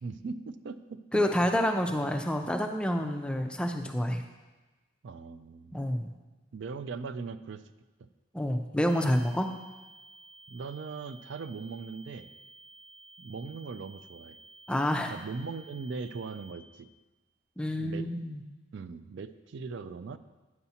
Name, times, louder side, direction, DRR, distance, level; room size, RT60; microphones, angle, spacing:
voice 1, 0.0-1.5 5.0-5.8 6.5-7.6 8.0-8.1 10.5-12.3 13.2-14.4 15.1-16.9 17.8-18.1 18.7-20.2, right 4 dB, 65° right, 12 dB, 0.3 m, -39 dB
voice 2, 1.1-4.2 5.7-6.1 8.3-9.5 14.7-15.1 17.6-18.4, left 1 dB, 5° left, 5 dB, 0.4 m, -28 dB
sound 1, 8.9-16.5, right 2 dB, 25° left, 1.0 m, -53 dB
9.5 x 6.9 x 2.8 m, 1.2 s
head